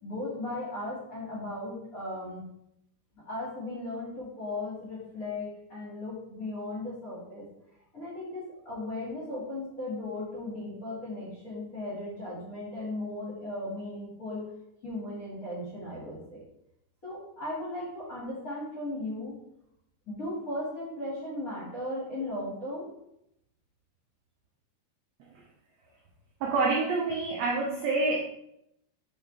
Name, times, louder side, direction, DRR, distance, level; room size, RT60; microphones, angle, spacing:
voice 1, 0.0-2.4 3.3-7.4 7.9-14.5 14.8-16.4 17.0-19.3 20.1-22.9, left 1 dB, 30° left, -7 dB, 2.3 m, -36 dB
voice 2, 26.4-28.2, right 3 dB, 70° right, -2 dB, 1.6 m, -27 dB
7.3 x 4.3 x 3.4 m, 0.79 s
omnidirectional pair, 3.9 m